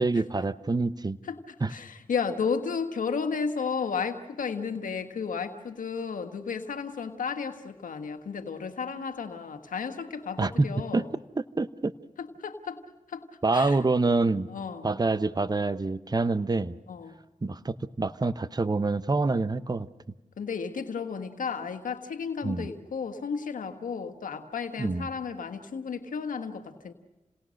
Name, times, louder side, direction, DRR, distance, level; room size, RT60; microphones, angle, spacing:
voice 1, 0.0-1.2 1.6-1.7 10.4-10.7 10.9-11.1 11.4-11.9 13.4-14.5 14.8-16.8 17.4-19.9 22.4-22.7 24.8-25.1, right 3 dB, 30° right, 13 dB, 0.9 m, -26 dB
voice 2, 1.2-11.1 12.2-12.8 13.1-13.2 13.5-13.8 14.5-14.9 16.9-17.2 20.4-26.9, left 5 dB, 85° left, 5 dB, 1.6 m, -33 dB
29.5 x 18.5 x 6.5 m, 1.0 s
cardioid pair, 45°, 13 cm